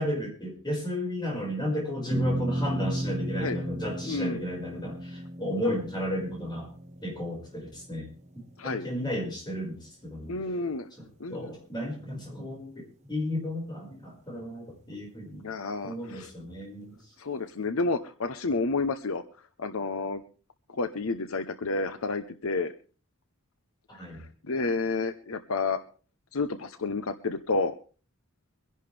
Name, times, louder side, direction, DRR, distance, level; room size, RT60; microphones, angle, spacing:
voice 1, 0.0-6.7 7.0-8.1 8.3-10.3 11.0-15.5 15.8-17.0 23.9-24.2, left 1 dB, 20° left, -1 dB, 5.3 m, -34 dB
sound 1, 2.1-8.7, right 1 dB, 30° right, 1.5 m, -34 dB
voice 2, 4.1-4.4 8.6-8.9 10.3-10.9 11.2-11.5 15.4-16.3 17.2-19.2 19.6-20.2 20.7-22.7 24.1-25.8 26.3-27.7, left 3 dB, 70° left, 9 dB, 0.8 m, -30 dB
24.0 x 11.0 x 3.4 m, 0.38 s
head